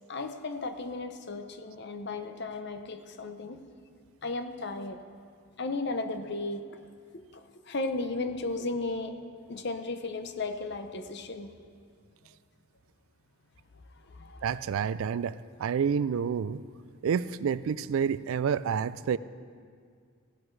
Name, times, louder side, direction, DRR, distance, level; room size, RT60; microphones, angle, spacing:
voice 1, 0.1-3.6 4.2-5.0 5.6-6.8 7.1-9.1 9.5-11.5 14.0-14.6, left 3 dB, 50° left, 8 dB, 0.7 m, -35 dB
voice 2, 14.4-16.6 17.0-19.2, right 7 dB, 70° right, 17 dB, 0.3 m, -29 dB
16.5 x 11.0 x 3.2 m, 2.1 s
head